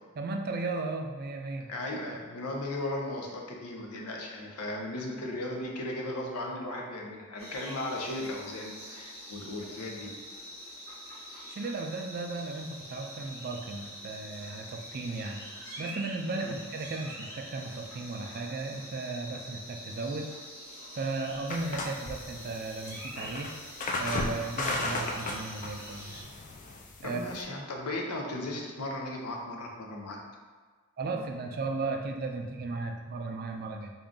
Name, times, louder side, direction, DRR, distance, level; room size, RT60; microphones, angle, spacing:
voice 1, 0.2-1.7 11.5-15.4 15.8-20.3 20.9-23.5 24.0-26.3 27.0-27.4 31.0-33.9, right 3 dB, 45° right, 3 dB, 0.4 m, -35 dB
voice 2, 1.7-10.1 15.7-15.8 16.4-16.5 27.0-30.2, left 1 dB, 90° left, 0 dB, 0.7 m, -36 dB
sound 1, 7.4-26.2, equal, 70° left, 1.1 m, -45 dB
sound 2, 21.5-27.4, left 2 dB, 35° left, 0.4 m, -35 dB
3.8 x 2.4 x 3.7 m, 1.5 s
head